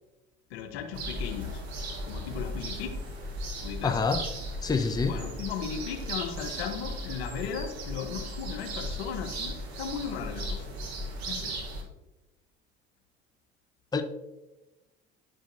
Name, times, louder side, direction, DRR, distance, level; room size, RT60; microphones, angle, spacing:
voice 1, 0.5-1.6 2.0-3.0 3.6-4.0 5.1-10.7 11.2-11.6, left 7 dB, 80° left, 5 dB, 0.9 m, -36 dB
sound 1, 0.9-11.8, right 1 dB, 80° right, 1.1 m, -36 dB
voice 2, 3.8-4.2 4.6-5.1 13.9-14.0, left 5 dB, 10° left, 7 dB, 0.6 m, -26 dB
10.5 x 5.1 x 2.6 m, 1.1 s
hypercardioid pair, 60°, 32 cm